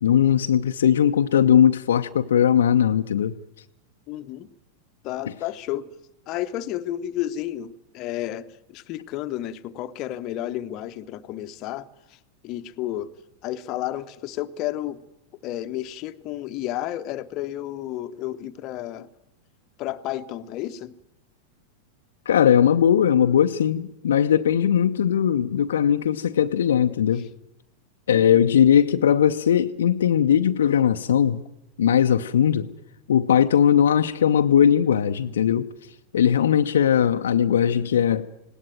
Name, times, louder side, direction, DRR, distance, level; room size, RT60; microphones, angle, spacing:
voice 1, 0.0-3.3 22.3-27.2 28.1-31.4 31.8-32.7 33.1-35.7 36.1-38.3, left 9 dB, 65° left, 6 dB, 0.7 m, -19 dB
voice 2, 4.1-4.5 5.0-5.9 6.3-12.2 12.4-13.1 13.4-15.0 15.4-19.1 19.8-20.9 27.1-27.3 28.1-28.4, left 13 dB, 40° left, 10 dB, 0.9 m, -32 dB
19.5 x 18.0 x 9.0 m, 0.85 s
figure-of-eight pair, 90°, 0 cm